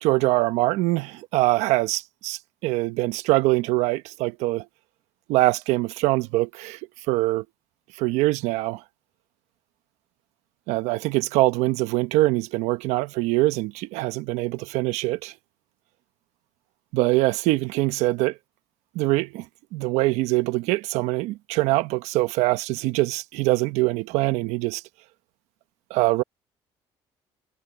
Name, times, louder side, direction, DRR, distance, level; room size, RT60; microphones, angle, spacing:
voice 1, 0.0-4.6 5.3-6.8 7.1-7.4 8.0-8.8 10.7-15.3 16.9-18.3 18.9-19.4 19.7-24.8 25.9-26.2, right 19 dB, 80° right, 1.2 m, -23 dB
supercardioid pair, 80°, 11 cm